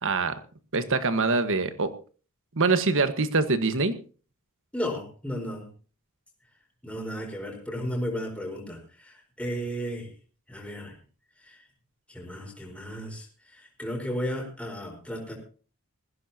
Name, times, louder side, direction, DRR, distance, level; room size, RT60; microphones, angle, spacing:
voice 1, 0.0-0.3 0.7-1.9 2.5-4.0, right 3 dB, 60° right, 11 dB, 1.4 m, -24 dB
voice 2, 4.7-5.7 6.8-10.1 10.5-10.9 11.5-11.6 12.1-13.3 13.5-15.3, equal, 5° left, -2 dB, 4.5 m, -34 dB
20.5 x 15.5 x 2.9 m, 0.38 s
head